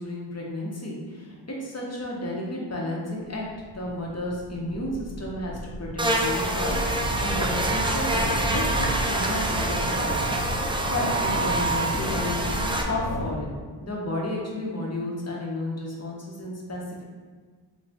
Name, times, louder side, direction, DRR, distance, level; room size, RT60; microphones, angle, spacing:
voice 1, 0.0-3.5 3.7-13.5 13.8-17.0, left 1 dB, 35° left, -3 dB, 1.0 m, -32 dB
sound 1, 3.3-9.1, right 1 dB, 35° right, 0.9 m, -36 dB
Buzz, 6.0-12.8, right 2 dB, 10° right, 0.4 m, -26 dB
sound 2, 6.6-13.3, left 2 dB, 60° left, 0.5 m, -32 dB
3.4 x 2.7 x 3.4 m, 1.5 s
cardioid pair, 50°, 46 cm